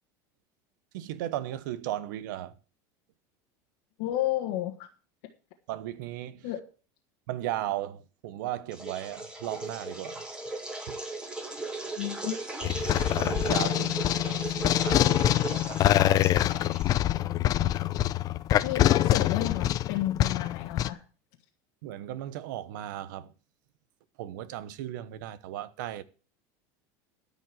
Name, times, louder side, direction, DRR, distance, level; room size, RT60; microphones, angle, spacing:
voice 1, 0.9-2.5 5.7-6.5 7.3-10.2 12.6-12.7 13.2-15.2 15.5-16.2 21.8-23.3 24.2-26.0, right 13 dB, 80° right, 1.0 m, -36 dB
voice 2, 4.0-4.9 6.4-6.6 12.0-12.4 17.6-17.8 18.6-21.0, left 13 dB, 70° left, 1.6 m, -32 dB
sound 1, 8.7-17.2, right 2 dB, 10° right, 2.2 m, -37 dB
sound 2, 12.6-20.9, left 13 dB, 40° left, 0.5 m, -25 dB
13.5 x 5.3 x 7.7 m
supercardioid pair, 135°, 10 cm